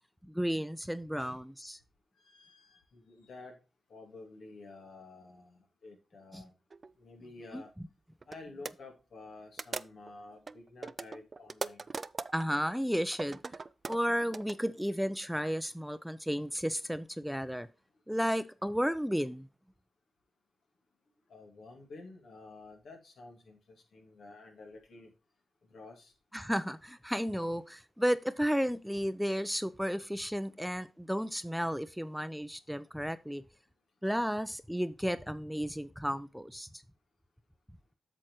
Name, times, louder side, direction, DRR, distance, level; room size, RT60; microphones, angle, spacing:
voice 1, 0.2-1.8 6.3-6.4 7.5-7.6 12.3-13.4 13.9-17.7 18.1-19.5 26.3-33.4 34.0-36.8, equal, ahead, 0.6 m, -33 dB
voice 2, 2.2-3.6 3.9-6.5 7.0-7.7 8.3-11.8 21.3-25.1 25.7-26.1 30.5-30.6, left 3 dB, 75° left, 2.6 m, -51 dB
sound 1, 6.7-6.9 7.6-7.7 8.2-8.4 8.6-8.7 9.6-10.1 10.5-12.5 13.1-14.5, right 4 dB, 45° right, 0.4 m, -40 dB
8.4 x 6.4 x 3.1 m
cardioid pair, 55°, 0 cm